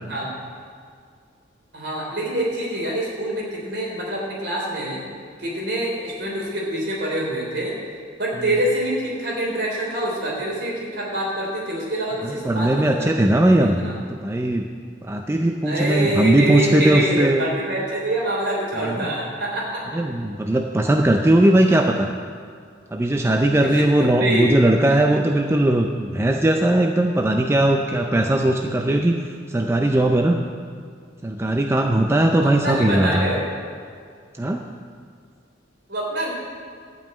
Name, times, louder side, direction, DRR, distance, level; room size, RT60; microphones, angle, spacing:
voice 1, 1.7-5.0 5.4-7.7 8.2-13.1 13.5-13.9 15.6-20.0 23.7-24.5 32.4-33.4 35.9-36.3, right 1 dB, 60° right, -3 dB, 3.4 m, -25 dB
voice 2, 12.2-13.8 14.1-14.7 15.0-17.5 18.8-19.1 19.9-22.1 22.9-29.1 29.5-30.4 31.2-33.3 34.4-34.6, right 1 dB, 15° right, 3 dB, 0.4 m, -19 dB
12.0 x 5.4 x 8.7 m, 2.1 s
head